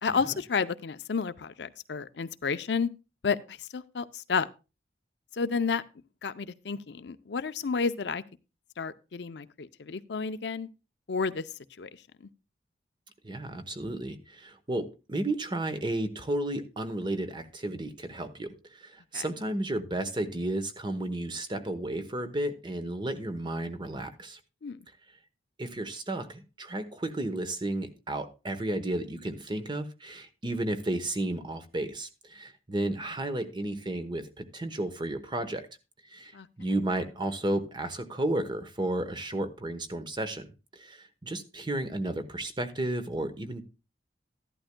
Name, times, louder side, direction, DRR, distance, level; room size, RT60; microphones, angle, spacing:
voice 1, 0.0-2.9 3.2-4.5 5.3-5.8 6.2-8.2 8.8-10.7 11.1-11.5 11.8-11.9 12.2-12.3 19.1-19.3 24.6-24.8 36.3-36.5, left 5 dB, 70° left, 0.5 m, -31 dB
voice 2, 13.2-24.4 25.6-35.7 36.1-40.5 40.7-43.6, right 1 dB, 25° right, 1.0 m, -33 dB
14.0 x 11.5 x 2.2 m
head